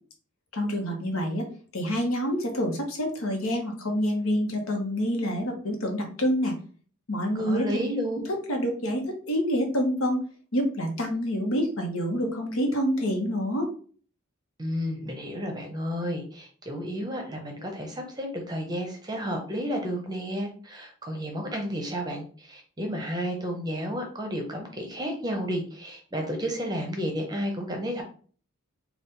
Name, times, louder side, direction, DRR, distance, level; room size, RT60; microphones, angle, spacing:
voice 1, 0.5-1.5 1.7-6.5 7.1-7.7 8.2-8.3 8.5-10.2 10.5-13.7, equal, 75° left, 2 dB, 1.0 m, -27 dB
voice 2, 7.3-8.2 14.6-28.0, equal, 20° right, 3 dB, 0.7 m, -32 dB
4.1 x 2.4 x 3.6 m, 0.42 s
head